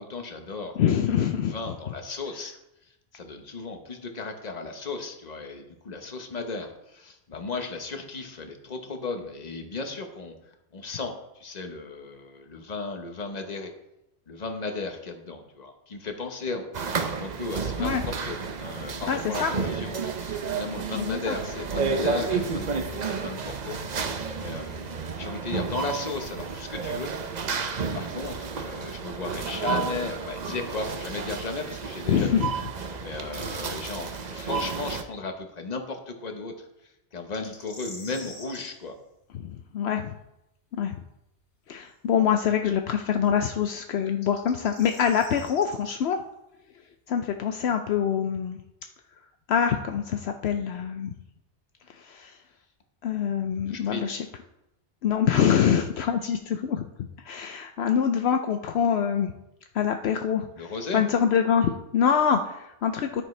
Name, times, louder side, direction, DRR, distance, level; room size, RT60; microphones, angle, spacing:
voice 1, 0.0-0.7 1.1-2.5 3.1-10.3 10.7-13.7 14.3-27.1 27.9-32.4 33.0-36.5 37.1-38.9 53.7-54.2 60.6-61.0, left 3 dB, 40° left, 5 dB, 1.1 m, -35 dB
voice 2, 0.8-1.5 17.8-18.0 19.1-19.5 20.9-21.3 32.1-32.5 34.3-34.4 39.3-40.1 40.7-40.9 41.7-46.2 47.1-48.6 49.5-51.1 52.0-52.4 53.0-54.3 55.0-56.8 57.2-59.3 59.7-63.2, left 8 dB, 75° left, 6 dB, 0.8 m, -25 dB
sound 1, 16.7-35.0, right 5 dB, 45° right, 0.7 m, -31 dB
sound 2, 37.3-38.7 41.8-41.9 44.1-45.8, left 2 dB, 90° left, 2.1 m, -44 dB
10.5 x 9.0 x 3.2 m, 0.88 s
omnidirectional pair, 1.1 m